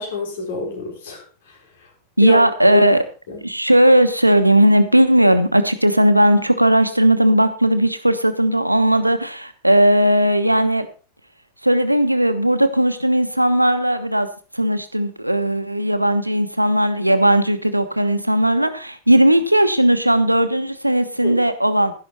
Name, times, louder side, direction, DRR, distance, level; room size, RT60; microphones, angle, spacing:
voice 1, 0.0-1.9 2.2-2.4 2.7-3.4 21.2-21.4, left 4 dB, 60° left, 1 dB, 4.9 m, -28 dB
voice 2, 2.2-3.0 3.4-10.9 11.6-14.3 14.5-21.9, right 1 dB, 85° right, 10 dB, 1.1 m, -16 dB
12.0 x 11.0 x 4.3 m, 0.36 s
figure-of-eight pair, 90°, 0 cm